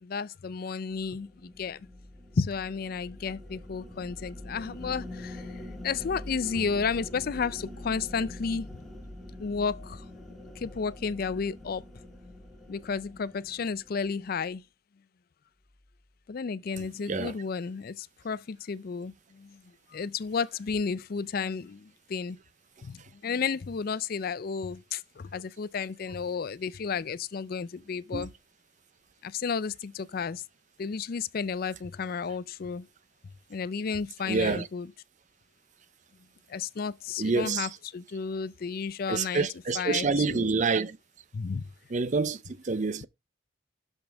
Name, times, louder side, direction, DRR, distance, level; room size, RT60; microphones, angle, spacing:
voice 1, 0.0-1.8 2.4-8.8 9.4-10.0 10.6-11.8 12.7-14.6 16.3-19.6 19.9-22.4 22.8-28.3 29.2-30.4 30.8-32.9 33.5-34.9 36.5-39.5 39.7-40.6 41.3-41.7, left 5 dB, 50° left, 0.4 m, -32 dB
sound 1, 0.9-14.5, left 1 dB, ahead, 1.7 m, -44 dB
voice 2, 34.3-34.7 37.2-37.7 39.1-41.0 41.9-43.1, right 4 dB, 40° right, 0.5 m, -27 dB
12.0 x 5.4 x 3.4 m
head